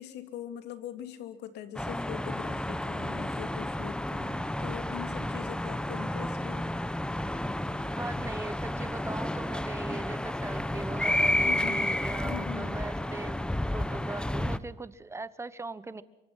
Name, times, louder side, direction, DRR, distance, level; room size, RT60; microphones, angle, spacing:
voice 1, 0.0-6.7 11.4-12.8, left 10 dB, 85° left, 9 dB, 2.7 m, -42 dB
sound 1, 1.8-14.6, left 1 dB, 5° left, 1.0 m, -31 dB
voice 2, 7.9-13.4 13.7-16.0, right 3 dB, 15° right, 16 dB, 1.1 m, -40 dB
26.5 x 24.0 x 5.7 m, 1.0 s
cardioid pair, 110°, 17 cm